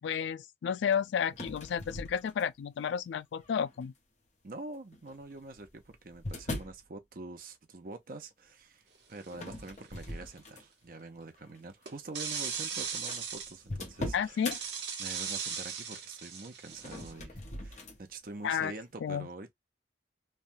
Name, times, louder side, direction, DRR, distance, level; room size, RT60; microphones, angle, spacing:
voice 1, 0.0-3.9 14.1-14.6 18.4-18.7 19.0-19.3, left 7 dB, 80° left, 0.3 m, -32 dB
sound 1, 1.3-2.7 3.4-3.8 4.9-6.9 9.3-10.9 11.4-11.6 12.4-12.5 12.6-12.7 13.1-14.6 16.7-18.0, left 1 dB, 40° left, 0.8 m, -41 dB
voice 2, 4.4-14.6 15.0-19.5, right 2 dB, 50° right, 0.7 m, -46 dB
Pouring Coffee Beans, 9.2-9.5 11.9-13.6 14.5-17.1, right 6 dB, 70° right, 1.1 m, -37 dB
3.2 x 2.3 x 2.6 m
head